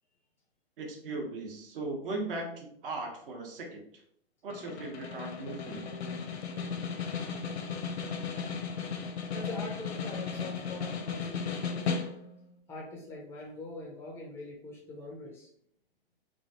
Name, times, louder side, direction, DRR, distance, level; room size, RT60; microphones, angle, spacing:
voice 1, 0.8-3.8 4.4-5.8, right 2 dB, 60° right, 1 dB, 0.9 m, -38 dB
Snare drum, 4.5-12.4, left 6 dB, 85° left, 0.6 m, -35 dB
voice 2, 9.3-12.0 12.7-15.5, left 2 dB, 10° left, -2 dB, 0.4 m, -43 dB
3.1 x 2.3 x 2.7 m, 0.67 s
hypercardioid pair, 135°, 32 cm